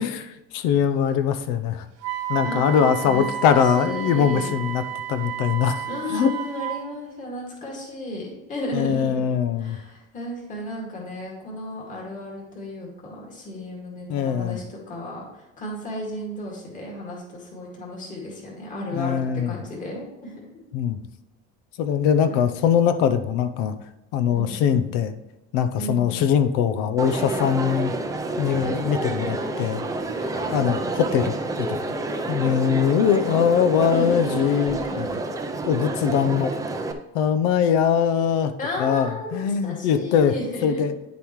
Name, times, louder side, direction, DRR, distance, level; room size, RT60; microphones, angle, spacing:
voice 1, 0.0-1.9 2.3-4.8 5.1-6.3 8.7-9.8 14.1-14.6 18.9-19.5 20.7-21.0 21.8-23.7 24.1-25.1 25.5-27.9 28.4-29.8 30.5-31.8 32.3-35.1 35.7-36.5 37.1-38.5 38.8-40.3 40.6-40.9, left 8 dB, 75° left, 11 dB, 0.8 m, -22 dB
Wind instrument woodwind instrument, 2.0-6.8, right 11 dB, 50° right, 0.8 m, -31 dB
voice 2, 2.4-4.6 5.9-9.3 9.6-20.6 22.3-22.4 24.3-24.8 25.8-26.3 30.3-30.7 33.9-35.1 38.6-40.8, left 1 dB, 25° left, -3 dB, 2.1 m, -34 dB
Crowd, 27.0-36.9, right 2 dB, 10° right, 0.5 m, -28 dB
9.8 x 7.0 x 3.1 m, 0.98 s
cardioid pair, 170°, 31 cm